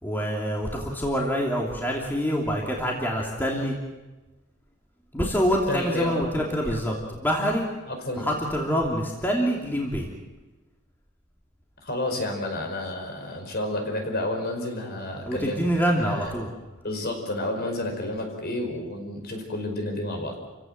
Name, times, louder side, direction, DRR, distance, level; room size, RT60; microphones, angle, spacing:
voice 1, 0.0-3.7 5.1-7.7 8.2-10.1 15.2-16.5, equal, 10° left, -1 dB, 2.9 m, -26 dB
voice 2, 5.7-6.2 6.5-6.8 7.9-8.3 11.8-15.6 16.0-16.3 16.8-20.3, left 1 dB, 50° left, 3 dB, 5.2 m, -30 dB
29.0 x 16.5 x 7.9 m, 1.1 s
head